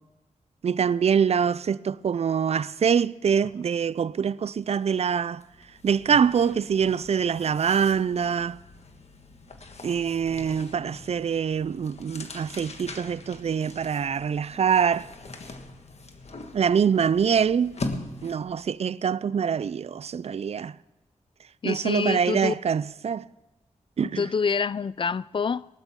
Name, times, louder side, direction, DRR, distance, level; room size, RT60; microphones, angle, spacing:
voice 1, 0.6-5.4 5.8-8.6 9.8-15.1 16.5-17.8 18.2-20.8 21.6-23.3 24.0-24.3, right 7 dB, 55° right, 0.4 m, -24 dB
sound 1, 4.6-4.8 5.1-18.6, left 2 dB, 60° left, 1.5 m, -42 dB
voice 2, 21.6-22.5 24.2-25.7, left 5 dB, 40° left, 0.4 m, -26 dB
19.5 x 12.0 x 3.7 m
wide cardioid pair, 80°, 13 cm